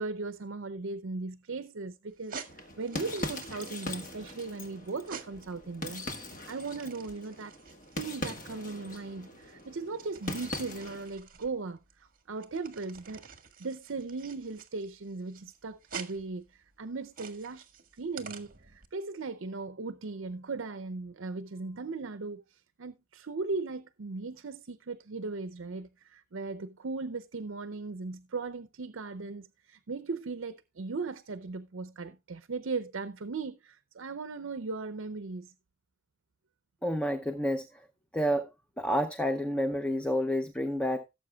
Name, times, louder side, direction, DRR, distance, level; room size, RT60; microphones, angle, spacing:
voice 1, 0.0-7.5 8.0-13.3 13.6-17.7 18.0-35.5, right 3 dB, 65° right, 0.6 m, -38 dB
sound 1, 2.1-18.9, right 6 dB, 40° right, 1.6 m, -49 dB
sound 2, 2.5-11.1, left 1 dB, 40° left, 1.5 m, -41 dB
voice 2, 36.8-37.9 38.1-38.5 38.8-41.1, equal, 5° left, 0.6 m, -29 dB
17.5 x 7.5 x 2.3 m
head